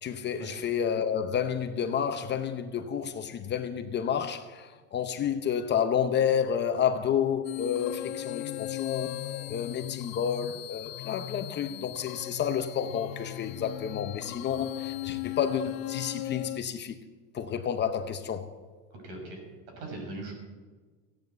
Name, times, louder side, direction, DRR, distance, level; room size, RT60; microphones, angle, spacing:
voice 1, 0.0-9.1 9.5-17.0 17.3-18.5, left 8 dB, 25° left, 0.8 m, -30 dB
sound 1, 7.4-16.6, left 16 dB, 85° left, 0.6 m, -37 dB
voice 2, 18.9-19.4 19.8-20.3, right 2 dB, 60° right, 6.1 m, -40 dB
16.0 x 9.3 x 8.0 m
supercardioid pair, 145°, 39 cm